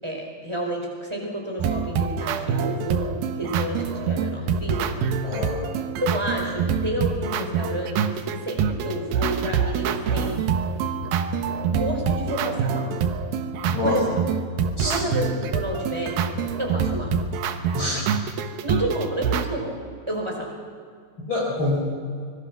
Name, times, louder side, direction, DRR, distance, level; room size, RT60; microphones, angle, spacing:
voice 1, 0.0-3.1 3.4-4.9 6.1-10.4 11.7-13.0 13.8-14.2 14.8-17.1 18.6-19.8 20.1-20.5, right 1 dB, 5° right, 0 dB, 4.3 m, -30 dB
sound 1, 1.6-19.5, right 6 dB, 70° right, 2.6 m, -26 dB
voice 2, 5.2-5.6 13.7-14.0 14.8-15.0 17.7-18.0 21.3-21.8, left 2 dB, 30° left, -5 dB, 4.9 m, -26 dB
25.0 x 21.0 x 6.0 m, 2.1 s
omnidirectional pair, 4.8 m